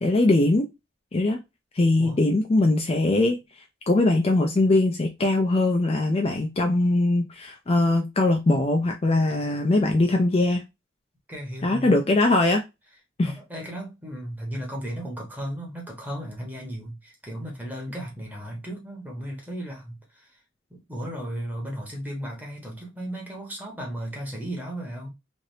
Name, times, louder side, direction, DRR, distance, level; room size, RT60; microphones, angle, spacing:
voice 1, 0.0-0.7 1.1-1.4 1.7-3.4 3.9-10.6 11.6-12.6 13.2-13.3, left 2 dB, 30° left, 0.4 m, -21 dB
voice 2, 11.3-12.0 13.2-20.4 20.7-25.1, equal, 10° right, 1.1 m, -35 dB
3.2 x 2.5 x 2.6 m
head